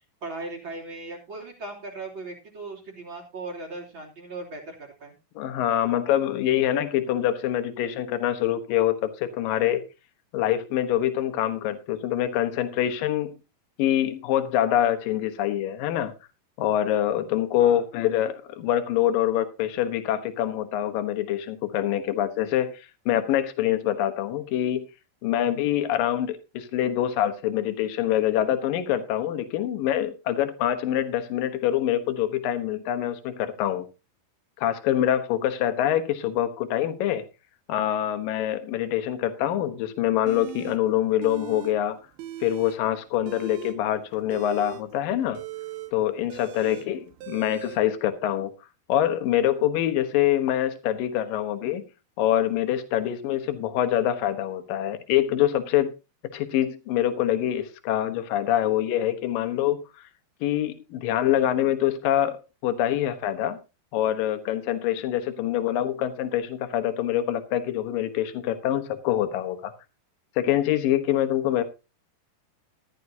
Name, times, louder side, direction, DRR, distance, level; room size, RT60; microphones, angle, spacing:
voice 1, 0.2-5.1 17.6-17.8 46.6-46.9, right 3 dB, 35° right, 3.5 m, -38 dB
voice 2, 5.4-9.8 10.3-13.3 13.8-16.1 16.6-24.9 25.2-33.8 34.6-37.3 37.7-42.0 42.4-45.4 45.9-47.0 47.3-48.5 48.9-51.8 52.2-55.9 56.3-59.8 60.4-62.4 62.6-63.6 63.9-69.7 70.4-71.6, left 11 dB, 70° left, 2.8 m, -25 dB
sound 1, 40.3-40.8 41.2-41.7 42.0-42.8 43.2-47.8, right 10 dB, 85° right, 2.9 m, -39 dB
14.5 x 12.0 x 2.8 m
omnidirectional pair, 4.3 m